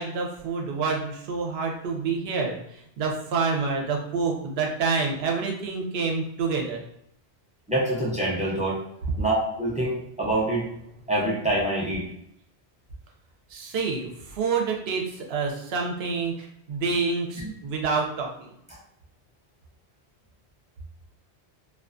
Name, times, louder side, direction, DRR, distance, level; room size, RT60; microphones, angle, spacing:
voice 1, 0.0-6.8 13.5-18.5, right 4 dB, 70° right, 1 dB, 0.8 m, -28 dB
voice 2, 7.7-8.8 9.2-10.7 11.1-12.1 17.4-17.5, right 1 dB, 10° right, -5 dB, 0.4 m, -25 dB
2.3 x 2.3 x 2.4 m, 0.76 s
omnidirectional pair, 1.1 m